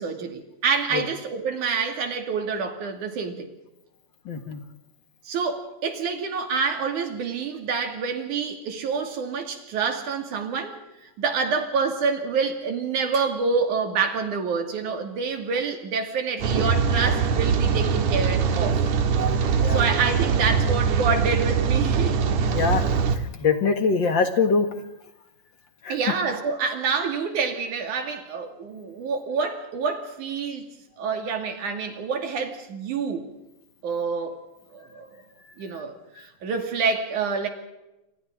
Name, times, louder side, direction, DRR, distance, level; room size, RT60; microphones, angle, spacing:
voice 1, 0.0-3.5 5.3-18.8 19.7-22.2 25.9-30.6 31.0-33.3 33.8-34.4 34.7-35.1 35.6-37.5, right 5 dB, 90° right, 5 dB, 3.9 m, -27 dB
voice 2, 4.3-4.6 19.5-19.8 22.5-22.9 23.4-24.7 25.8-26.0, left 5 dB, 45° left, 7 dB, 2.1 m, -23 dB
Rain, 16.4-23.2, right 6 dB, 70° right, 2.8 m, -22 dB
28.0 x 26.5 x 3.8 m, 0.93 s
omnidirectional pair, 3.4 m